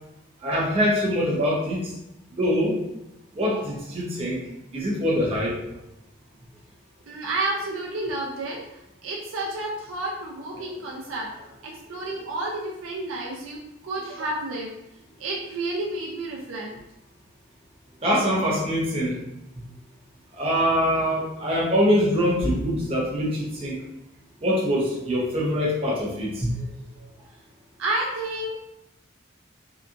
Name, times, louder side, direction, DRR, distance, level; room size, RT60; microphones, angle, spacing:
voice 1, 0.4-1.9 2.3-2.8 3.3-4.4 4.7-5.6 10.5-11.0 12.0-12.2 18.0-19.2 20.3-23.8 24.4-26.7, equal, 30° right, -5 dB, 0.6 m, -24 dB
voice 2, 7.1-8.6 9.0-11.3 11.6-14.7 15.2-16.7 27.8-28.5, right 2 dB, 90° right, -2 dB, 0.4 m, -30 dB
2.7 x 2.3 x 2.4 m, 0.89 s
head